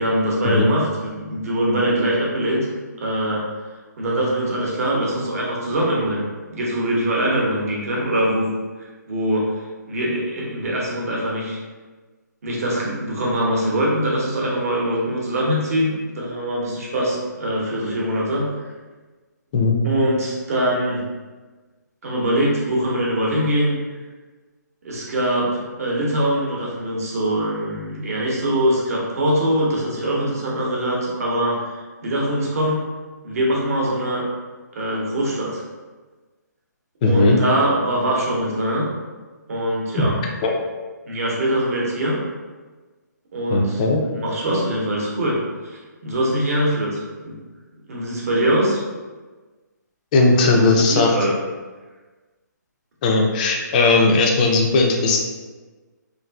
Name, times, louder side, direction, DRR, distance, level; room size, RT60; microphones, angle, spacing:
voice 1, 0.0-2.7 3.0-3.5 4.0-8.5 8.8-9.5 9.9-11.6 12.4-18.5 19.8-21.0 22.0-23.8 24.8-31.7 32.0-32.8 33.2-34.2 34.7-35.6 37.0-38.9 39.5-40.1 41.0-42.2 43.3-45.4 45.6-47.0 47.2-47.4 47.9-48.8 50.4-51.3, right 1 dB, 50° right, -4 dB, 0.8 m, -23 dB
voice 2, 19.5-19.9 37.0-37.4 40.0-40.1 40.4-40.5 43.5-44.0 50.1-51.2 53.0-55.2, left 3 dB, 25° left, 1 dB, 0.3 m, -17 dB
2.5 x 2.5 x 2.2 m, 1.3 s
hypercardioid pair, 150°, 10 cm